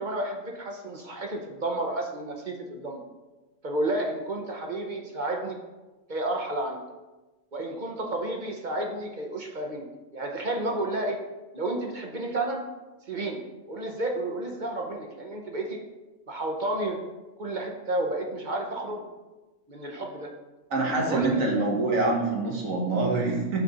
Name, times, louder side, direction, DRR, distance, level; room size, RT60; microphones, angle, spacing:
voice 1, 0.0-3.0 3.6-5.6 6.1-6.8 7.5-9.8 10.1-11.2 11.5-12.6 13.1-13.4 13.7-15.8 16.3-17.0 17.4-19.0 19.7-20.3 21.1-21.3, right 1 dB, 40° right, 1 dB, 0.8 m, -31 dB
voice 2, 20.7-23.6, right 2 dB, 75° right, -1 dB, 1.7 m, -25 dB
6.0 x 4.2 x 5.1 m, 1.1 s
omnidirectional pair, 1.4 m